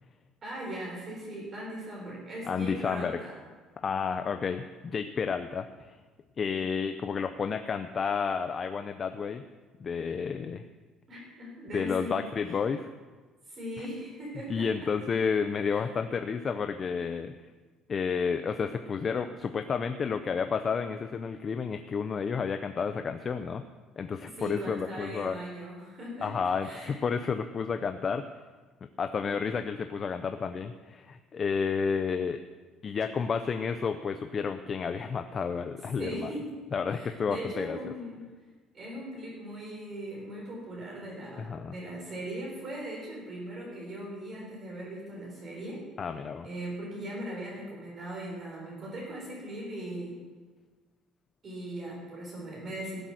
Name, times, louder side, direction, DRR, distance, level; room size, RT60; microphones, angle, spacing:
voice 1, 0.4-3.3 11.1-12.2 13.5-14.7 15.7-15.8 24.4-26.3 26.6-27.0 36.0-36.5 36.9-38.2 38.7-45.8 46.4-50.2 51.4-53.0, right 1 dB, 30° right, -3 dB, 3.9 m, -39 dB
voice 2, 2.5-3.2 3.8-5.9 6.4-9.4 9.8-10.6 11.7-12.9 13.8-13.9 14.5-17.3 17.9-23.6 24.0-25.4 26.2-28.5 29.0-32.4 32.8-36.3 36.7-37.8 41.4-41.8 46.0-46.5, left 6 dB, 25° left, 8 dB, 0.5 m, -31 dB
17.0 x 7.9 x 6.3 m, 1.4 s
cardioid pair, 165°, 0 cm